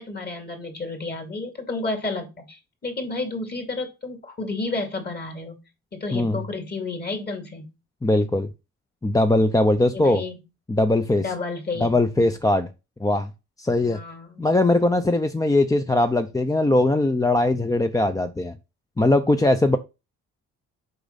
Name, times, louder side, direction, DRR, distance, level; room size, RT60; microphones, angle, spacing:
voice 1, 0.0-5.6 5.9-7.7 9.9-10.3 11.1-12.0 13.8-14.4, left 3 dB, 35° left, 2.7 m, -31 dB
voice 2, 6.1-6.4 8.0-8.5 9.0-10.2 10.7-11.3 11.8-12.7 13.0-13.3 13.6-14.0 14.4-18.6 19.0-19.8, left 2 dB, 10° left, 0.6 m, -20 dB
6.8 x 5.1 x 4.1 m
cardioid pair, 90°, 30 cm